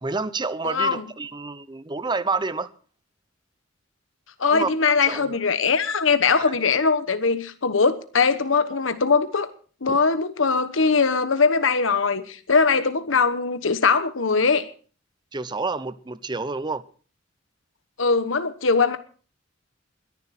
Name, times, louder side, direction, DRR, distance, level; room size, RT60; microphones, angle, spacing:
voice 1, 0.0-2.7 4.5-4.7 5.0-5.4 6.4-6.5 15.3-16.8, right 3 dB, 25° right, 0.7 m, -28 dB
voice 2, 0.6-1.0 4.4-9.5 9.8-14.7 18.0-19.0, left 4 dB, 85° left, 1.1 m, -21 dB
22.0 x 10.5 x 4.2 m
head